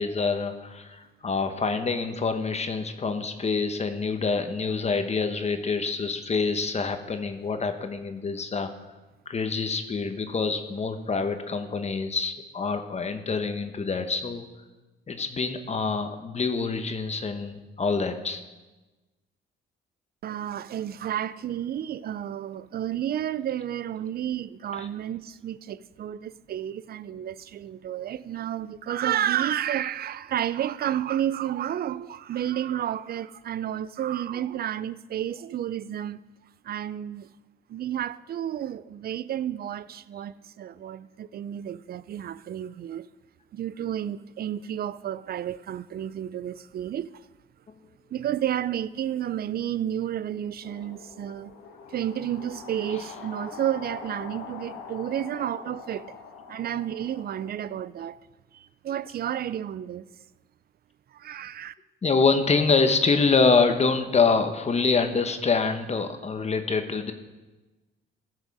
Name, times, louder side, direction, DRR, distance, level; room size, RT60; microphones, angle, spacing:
voice 1, 0.0-8.7 9.3-14.5 15.1-18.4 24.8-24.9 62.0-67.1, left 4 dB, 35° left, 1.0 m, -26 dB
voice 2, 20.2-36.2 36.6-37.3 37.7-43.1 43.5-47.1 48.1-51.5 51.9-56.2 56.5-58.2 58.5-60.0 61.1-61.7, right 10 dB, 50° right, 0.4 m, -31 dB
sound 1, 50.6-57.5, left 5 dB, 80° left, 1.1 m, -43 dB
15.0 x 6.4 x 4.8 m
cardioid pair, 90°, 20 cm